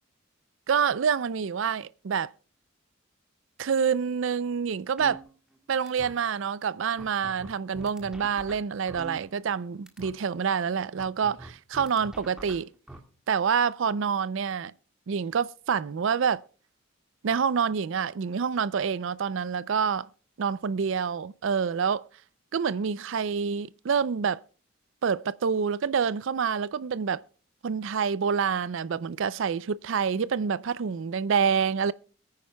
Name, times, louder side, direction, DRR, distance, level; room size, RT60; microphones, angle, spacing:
voice 1, 0.7-2.3 3.6-5.2 5.7-12.7 13.3-14.7 15.1-16.4 17.2-20.1 20.4-22.1 22.5-24.4 25.0-27.2 27.6-31.9, right 6 dB, 65° right, 0.4 m, -27 dB
sound 1, 5.0-5.6 5.9-6.1 6.6-6.7 7.0-9.6 9.9-10.1 11.0-13.0, right 1 dB, 5° right, 1.7 m, -44 dB
22.5 x 9.6 x 2.2 m
head